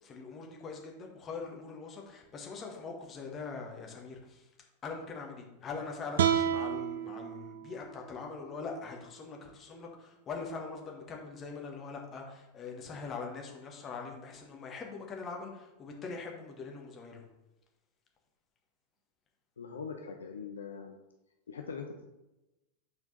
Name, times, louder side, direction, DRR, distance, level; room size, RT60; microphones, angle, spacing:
voice 1, 0.0-4.5 4.8-17.3, left 4 dB, 25° left, 0 dB, 1.6 m, -42 dB
sound 1, 6.2-9.3, right 9 dB, 60° right, 0.4 m, -32 dB
voice 2, 19.6-21.0 21.5-22.1, left 5 dB, 70° left, 3 dB, 0.7 m, -42 dB
7.9 x 4.5 x 4.1 m, 0.97 s
figure-of-eight pair, 90°, 0 cm